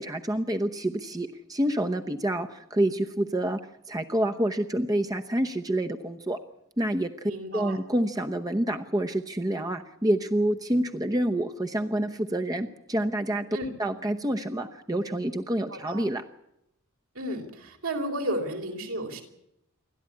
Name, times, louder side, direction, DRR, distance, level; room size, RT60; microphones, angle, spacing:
voice 1, 0.0-3.6 3.9-6.4 6.8-13.5 13.8-16.2, right 1 dB, 15° right, 5 dB, 0.9 m, -28 dB
voice 2, 7.3-7.8 13.5-13.7 15.7-16.0 17.1-19.2, right 1 dB, 70° right, 3 dB, 4.3 m, -33 dB
28.5 x 12.5 x 9.8 m, 0.82 s
head